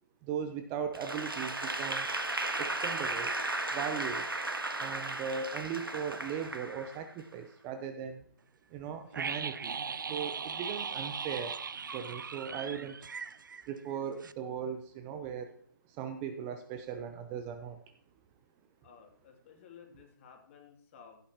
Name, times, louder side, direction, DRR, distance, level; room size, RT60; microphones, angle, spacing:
voice 1, 0.2-2.1 2.6-3.3 3.7-4.3 4.8-8.2 8.7-11.6 11.9-13.0 13.7-15.5 15.9-17.8, right 7 dB, 20° right, 8 dB, 0.6 m, -38 dB
Applause / Crowd, 0.9-7.3, right 2 dB, 85° right, 1.4 m, -35 dB
sound 1, 9.1-14.0 14.2-14.3, right 5 dB, 65° right, 0.6 m, -38 dB
voice 2, 18.8-21.2, left 7 dB, 35° left, 2 dB, 2.5 m, -55 dB
15.5 x 8.6 x 2.9 m, 0.63 s
figure-of-eight pair, 140°, 12 cm